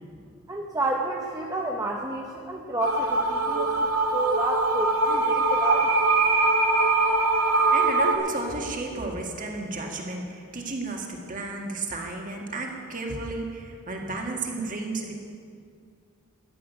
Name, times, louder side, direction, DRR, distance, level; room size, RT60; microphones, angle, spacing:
voice 1, 0.5-5.9, right 2 dB, 15° right, 0 dB, 0.8 m, -30 dB
sound 1, 2.8-8.1, right 3 dB, 80° right, 2.0 m, -22 dB
voice 2, 7.7-15.2, right 2 dB, 40° right, 1 dB, 1.9 m, -33 dB
13.5 x 7.5 x 9.4 m, 2.2 s
head